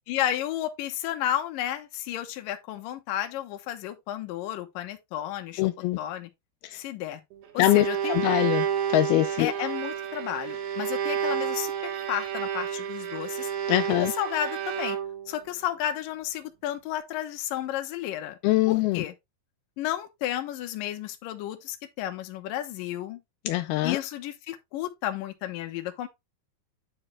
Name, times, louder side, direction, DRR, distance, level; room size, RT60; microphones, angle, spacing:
voice 1, 0.1-5.7 6.0-6.3 6.7-7.2 7.5-8.3 9.4-13.5 14.0-15.0 15.3-18.4 18.7-19.1 19.8-23.2 23.8-26.1, left 12 dB, 70° left, 2.3 m, -32 dB
voice 2, 5.6-6.0 7.6-8.7 8.9-9.5 13.7-14.1 18.4-19.0 23.5-24.0, left 17 dB, 85° left, 2.2 m, -23 dB
Bowed string instrument, 7.3-15.4, right 9 dB, 70° right, 3.1 m, -30 dB
9.9 x 4.6 x 3.2 m
omnidirectional pair, 5.0 m